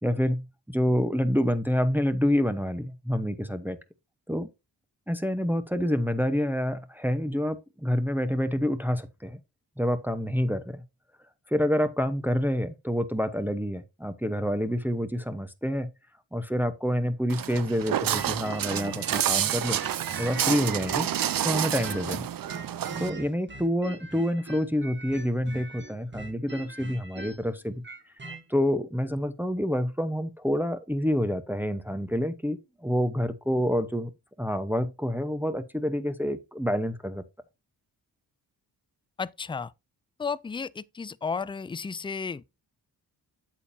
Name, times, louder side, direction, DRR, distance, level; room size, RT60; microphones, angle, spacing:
voice 1, 0.0-3.8 4.3-4.5 5.1-9.4 9.8-10.8 11.5-15.9 16.3-19.8 20.2-21.1 21.4-22.3 23.0-28.1 28.5-34.1 34.4-37.2, equal, 5° right, 1.0 m, -27 dB
Walk footsteps, 17.3-23.1, right 10 dB, 50° right, 0.6 m, -29 dB
sound 1, 18.1-22.2 22.5-28.4, right 2 dB, 25° right, 1.6 m, -42 dB
voice 2, 39.2-39.7 40.2-42.5, left 5 dB, 10° left, 0.4 m, -33 dB
8.3 x 7.3 x 2.8 m
supercardioid pair, 45°, 45 cm